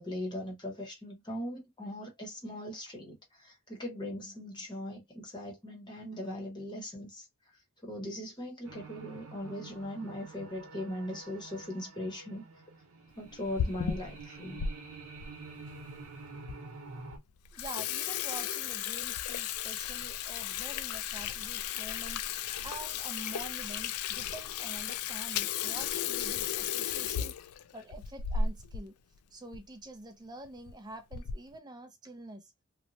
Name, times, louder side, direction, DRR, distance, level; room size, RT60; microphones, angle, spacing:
voice 1, 0.0-12.4 13.2-14.7, left 1 dB, 20° left, 0.9 m, -40 dB
sound 1, 8.6-17.2, right 3 dB, 80° right, 0.8 m, -48 dB
Water tap faucet / Sink (filling or washing), 13.3-14.7 15.2-15.3 16.0-16.1 16.5-16.6 17.0-17.2 17.4-28.9 29.2-29.3 29.5-29.7 30.4-30.7 31.1-31.5, left 8 dB, 80° left, 0.3 m, -35 dB
voice 2, 17.5-27.3 27.7-28.9 29.3-32.5, right 2 dB, 20° right, 0.4 m, -47 dB
2.9 x 2.1 x 2.6 m
head